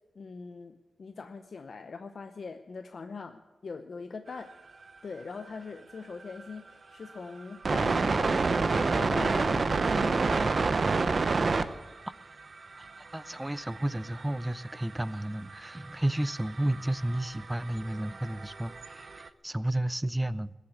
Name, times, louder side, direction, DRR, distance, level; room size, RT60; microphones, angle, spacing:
voice 1, 0.1-4.5 5.0-10.8, left 4 dB, 55° left, 0.7 m, -41 dB
sound 1, 6.4-6.5 7.4-11.7 12.0-12.2 12.5-19.3, right 4 dB, 45° right, 0.8 m, -29 dB
voice 2, 13.1-20.5, right 1 dB, 10° right, 0.4 m, -32 dB
20.5 x 8.5 x 8.0 m
wide cardioid pair, 170°, 0 cm